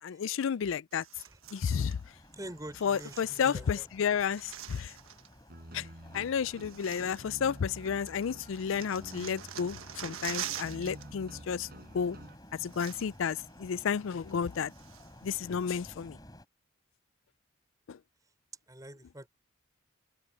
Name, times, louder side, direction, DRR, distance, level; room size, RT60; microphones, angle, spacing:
voice 1, 0.0-1.0 1.5-2.0 2.8-4.9 5.7-5.9 6.1-11.7 11.9-12.2 12.6-14.7 15.2-16.2 17.9-18.0, left 7 dB, 65° left, 0.4 m, -32 dB
sound 1, 0.9-2.0 2.8-3.8 4.1-5.3 6.2-6.3 6.6-7.8 8.1-11.1 11.3-11.5 12.3-12.4 12.6-13.3 13.7-13.8 14.3-15.3 15.8-15.9, right 10 dB, 75° right, 1.3 m, -45 dB
sound 2, 1.4-16.4, left 1 dB, 20° left, 5.6 m, -54 dB
voice 2, 2.4-3.9 18.7-19.3, right 1 dB, 15° right, 5.4 m, -45 dB
sound 3, 5.5-12.3, right 1 dB, 45° right, 6.3 m, -49 dB
open air
head